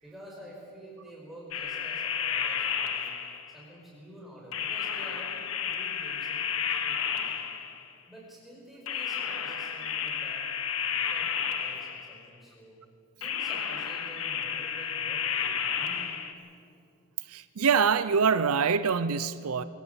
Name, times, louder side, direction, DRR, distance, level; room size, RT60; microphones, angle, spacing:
voice 1, 0.0-3.2 3.5-7.4 8.1-10.5 10.8-12.8 13.2-16.1, right 1 dB, ahead, -4 dB, 5.4 m, -49 dB
sound 1, 1.5-3.6 4.5-7.9 8.9-12.2 13.2-16.3, left 7 dB, 75° left, 1.4 m, -32 dB
voice 2, 17.3-19.6, right 6 dB, 90° right, 14 dB, 0.6 m, -25 dB
23.5 x 16.5 x 7.0 m, 2.4 s
head